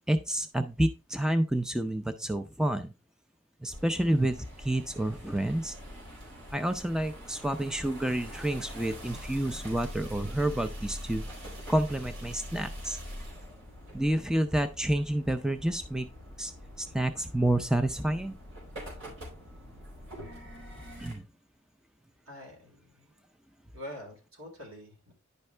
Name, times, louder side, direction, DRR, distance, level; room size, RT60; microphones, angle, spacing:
voice 1, 0.1-2.9 3.6-5.8 6.5-11.2 11.7-13.0 13.9-16.1 16.4-16.5 16.8-18.4 21.0-21.2, right 1 dB, 5° right, 9 dB, 0.4 m, -29 dB
sound 1, 3.7-21.1, equal, 65° right, 4.0 m, -44 dB
voice 2, 22.3-23.2 23.7-25.1, left 1 dB, 80° right, -1 dB, 4.5 m, -45 dB
10.5 x 5.4 x 3.3 m, 0.30 s
head